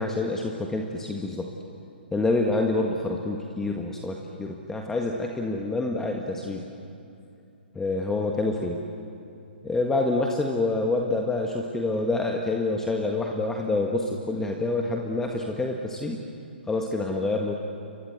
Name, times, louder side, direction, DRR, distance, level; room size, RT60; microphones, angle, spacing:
voice 1, 0.0-1.5 2.1-6.6 7.7-8.8 9.6-16.2 16.7-17.5, left 2 dB, 5° left, 1 dB, 1.7 m, -27 dB
29.5 x 24.0 x 8.1 m, 2.7 s
figure-of-eight pair, 130°, 6 cm